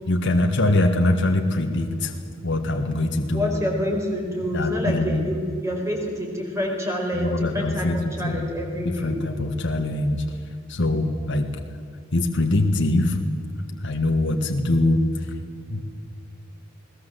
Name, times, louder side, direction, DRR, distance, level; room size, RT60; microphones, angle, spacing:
voice 1, 0.1-2.2 2.4-3.5 4.5-5.3 7.1-8.4 8.8-10.2 10.7-11.5 12.1-13.2 13.8-15.3 15.7-15.8, left 2 dB, 60° left, 4 dB, 1.6 m, -23 dB
voice 2, 3.3-9.1, left 1 dB, 15° right, 0 dB, 5.0 m, -27 dB
20.5 x 19.0 x 7.8 m, 2.3 s
head